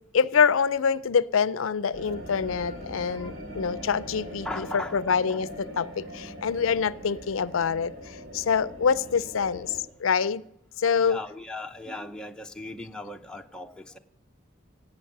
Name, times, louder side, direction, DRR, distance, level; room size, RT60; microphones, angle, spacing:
voice 1, 0.1-10.4 10.8-11.2, left 6 dB, 80° left, 0.5 m, -25 dB
sound 1, 1.9-9.8, equal, 50° right, 2.5 m, -41 dB
voice 2, 4.4-5.4 11.0-14.0, left 2 dB, 5° left, 0.7 m, -38 dB
17.5 x 8.5 x 6.6 m
head